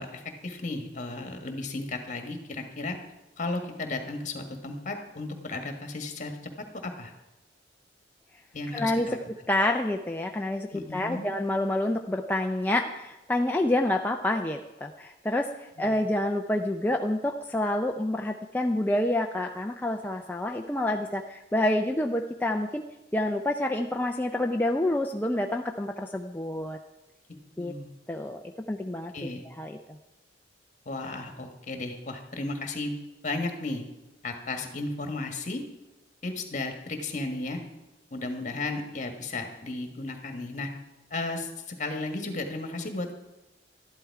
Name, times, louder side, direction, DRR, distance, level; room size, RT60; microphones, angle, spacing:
voice 1, 0.0-3.0 3.4-6.3 6.8-7.1 8.5-9.2 10.7-11.3 15.8-16.0 27.6-27.9 29.1-29.4 30.9-32.9 33.2-33.8 34.2-35.6 36.2-37.6 38.1-40.7 41.1-43.1, left 2 dB, 45° left, 5 dB, 1.8 m, -34 dB
voice 2, 8.7-9.1 9.5-22.8 23.1-26.8 27.6-27.7 28.1-28.4 28.7-29.1 29.6-29.8, left 1 dB, 10° left, 2 dB, 0.5 m, -28 dB
12.5 x 11.5 x 4.8 m, 0.99 s
head